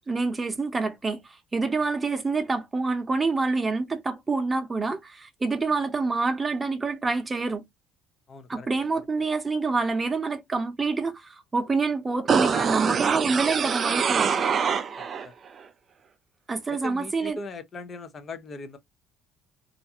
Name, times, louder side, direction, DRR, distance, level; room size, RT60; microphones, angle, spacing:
voice 1, 0.1-7.6 8.5-14.4 16.5-17.4, right 3 dB, 20° right, 0.7 m, -27 dB
voice 2, 8.3-8.7 9.2-9.3 15.0-15.4 16.7-18.8, left 3 dB, 35° left, 0.5 m, -40 dB
sound 1, 12.3-15.3 15.6-15.7, right 6 dB, 40° right, 0.3 m, -24 dB
2.5 x 2.2 x 2.6 m
cardioid pair, 110°, 0 cm